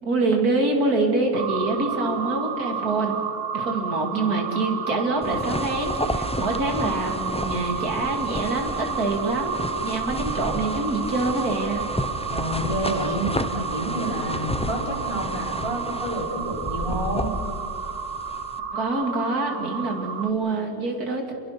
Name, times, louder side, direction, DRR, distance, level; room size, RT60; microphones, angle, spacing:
voice 1, 0.0-3.2 3.5-11.8 18.7-21.3, right 2 dB, 85° right, 3 dB, 3.3 m, -25 dB
sound 1, 1.3-20.3, right 6 dB, 60° right, 1.5 m, -31 dB
sound 2, 5.2-18.6, left 1 dB, 5° left, 0.5 m, -32 dB
voice 2, 12.3-17.3, right 1 dB, 20° right, -1 dB, 4.5 m, -29 dB
26.5 x 22.5 x 6.0 m, 2.7 s
omnidirectional pair, 1.6 m